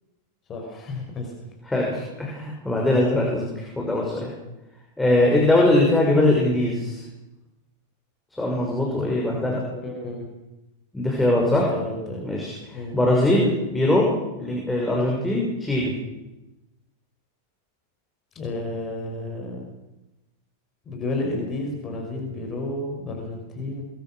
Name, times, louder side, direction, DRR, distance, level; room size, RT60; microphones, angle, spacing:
voice 1, 0.5-1.3 9.7-10.3 11.4-12.2 12.7-13.0 18.4-19.7 20.9-23.8, left 2 dB, 25° left, 2 dB, 5.7 m, -31 dB
voice 2, 1.7-4.3 5.0-7.0 8.4-9.6 10.9-11.7 12.2-14.0 14.4-15.9, left 1 dB, 5° left, -2 dB, 6.3 m, -21 dB
24.0 x 21.5 x 6.5 m, 1.0 s
figure-of-eight pair, 90°, 0 cm